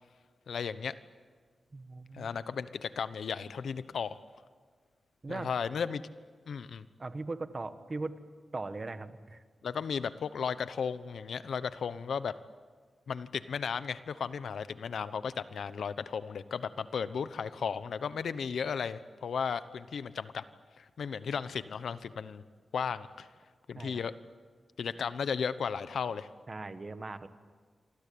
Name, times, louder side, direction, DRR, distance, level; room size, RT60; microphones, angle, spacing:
voice 1, 0.5-0.9 2.1-4.2 5.3-6.0 6.5-6.8 9.6-12.3 13.1-20.4 20.8-22.4 22.7-23.3 23.7-24.1 24.8-26.3, left 6 dB, 85° left, 13 dB, 1.0 m, -35 dB
voice 2, 1.7-2.3 5.2-5.5 7.0-8.1 8.5-9.4 23.7-24.0 26.5-27.3, right 3 dB, 30° right, 10 dB, 1.3 m, -39 dB
28.5 x 24.5 x 8.6 m, 1.5 s
wide cardioid pair, 165°, 0 cm